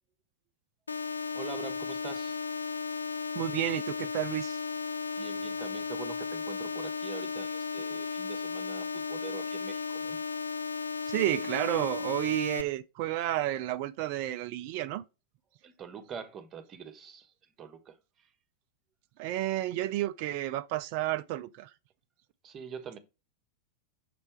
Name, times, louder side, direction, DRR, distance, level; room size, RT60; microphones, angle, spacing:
sound 1, 0.9-12.6, left 5 dB, 75° left, 0.3 m, -35 dB
voice 1, 1.3-2.4 5.2-10.2 15.6-17.3 17.6-18.3 22.4-23.0, right 7 dB, 30° right, 1.1 m, -44 dB
voice 2, 3.3-4.6 11.1-15.0 19.2-21.7, right 14 dB, 45° right, 0.4 m, -31 dB
6.7 x 3.3 x 4.4 m
figure-of-eight pair, 90°, 0 cm